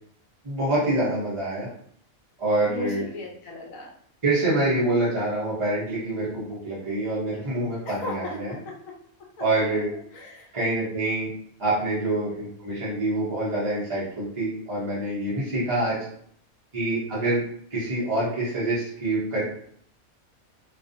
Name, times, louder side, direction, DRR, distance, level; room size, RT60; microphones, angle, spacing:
voice 1, 0.4-1.7 2.4-3.0 4.2-8.6 9.4-9.9 10.5-11.3 11.6-16.1 16.7-17.4 17.7-19.4, right 2 dB, 35° right, -8 dB, 0.5 m, -26 dB
voice 2, 2.6-3.9 7.9-8.8 10.1-10.5, left 1 dB, 75° left, -1 dB, 1.0 m, -36 dB
2.4 x 2.3 x 2.5 m, 0.63 s
omnidirectional pair, 1.4 m